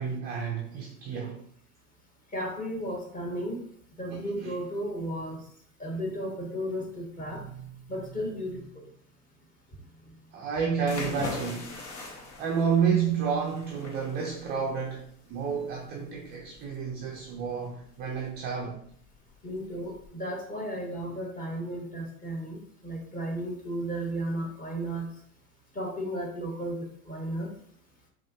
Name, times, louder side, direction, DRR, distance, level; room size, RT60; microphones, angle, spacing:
voice 1, 0.0-1.4 4.1-4.6 10.3-18.8, right 6 dB, 20° right, 0.4 m, -30 dB
voice 2, 2.3-3.6 4.0-5.4 5.8-8.9 19.4-25.1 25.7-27.5, right 1 dB, 15° left, 1.1 m, -34 dB
sound 1, 10.8-20.1, left 3 dB, 65° left, 1.3 m, -43 dB
5.3 x 2.6 x 2.8 m
hypercardioid pair, 110°, 47 cm